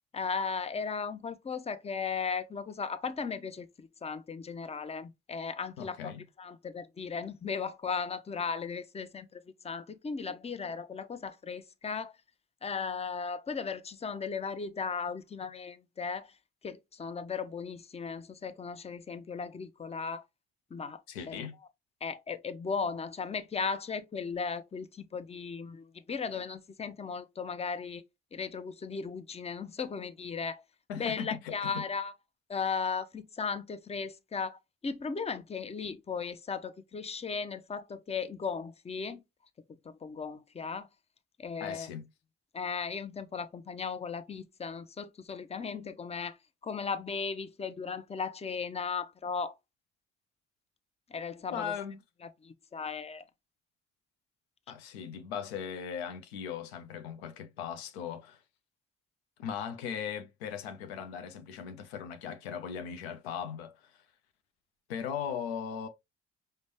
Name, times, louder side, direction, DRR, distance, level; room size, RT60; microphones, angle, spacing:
voice 1, 0.1-6.1 6.4-12.1 12.6-16.3 16.6-20.2 20.7-21.0 21.3-21.5 22.0-28.0 28.3-30.6 31.0-32.1 32.5-39.2 39.9-40.9 41.4-41.9 42.5-46.3 46.6-49.5 51.1-51.7 52.4-53.2, left 5 dB, 20° left, 0.6 m, -36 dB
voice 2, 5.8-6.2 21.1-21.5 30.9-31.8 41.6-42.1 51.5-52.0 54.7-58.4 59.4-64.0 64.9-65.9, left 7 dB, 85° left, 0.5 m, -38 dB
5.1 x 2.1 x 3.1 m
hypercardioid pair, 45°, 31 cm